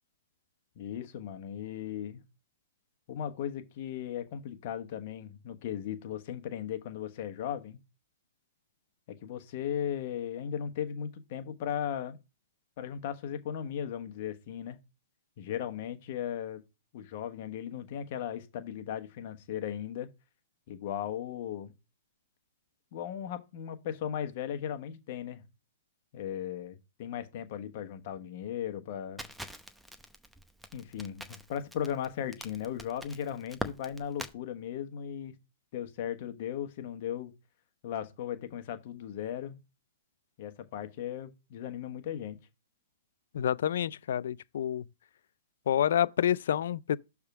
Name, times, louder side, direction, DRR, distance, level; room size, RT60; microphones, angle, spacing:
voice 1, 0.8-2.2 3.1-7.8 9.1-12.2 12.8-14.8 15.4-16.6 16.9-20.1 20.7-21.7 22.9-25.4 26.1-29.3 30.7-35.3 35.7-37.3 37.8-39.6 40.4-42.4, left 9 dB, 55° left, 1.2 m, -37 dB
Crackle, 29.2-34.3, equal, 5° right, 0.7 m, -43 dB
voice 2, 43.3-44.8 45.7-47.0, left 10 dB, 75° left, 0.3 m, -28 dB
6.5 x 3.5 x 6.0 m
hypercardioid pair, 135°, 0 cm